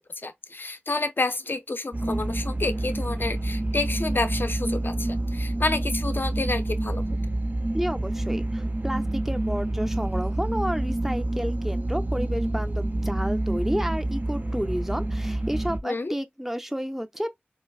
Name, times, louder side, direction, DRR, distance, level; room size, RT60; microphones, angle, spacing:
voice 1, 0.2-7.0 15.8-16.1, left 3 dB, 65° left, 0.5 m, -29 dB
sound 1, 1.9-15.8, right 1 dB, 45° right, 0.6 m, -28 dB
voice 2, 7.7-17.3, equal, 10° right, 0.6 m, -31 dB
4.4 x 2.0 x 2.3 m
wide cardioid pair, 45°, 4 cm